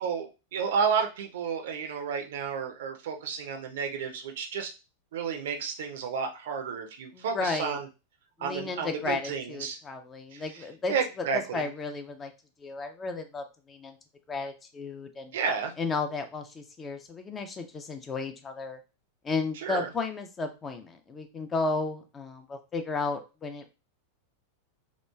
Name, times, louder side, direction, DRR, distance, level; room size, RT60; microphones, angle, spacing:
voice 1, 0.0-4.7 5.1-7.8 8.4-9.8 10.3-10.4 10.9-11.6 15.3-15.7 19.6-19.9, right 6 dB, 55° right, 4 dB, 0.5 m, -31 dB
voice 2, 7.1-7.8 8.4-12.3 12.6-14.0 14.3-15.4 15.8-18.8 19.2-23.7, left 4 dB, 20° left, 6 dB, 0.4 m, -34 dB
2.9 x 2.3 x 2.2 m, 0.30 s
figure-of-eight pair, 90°, 0 cm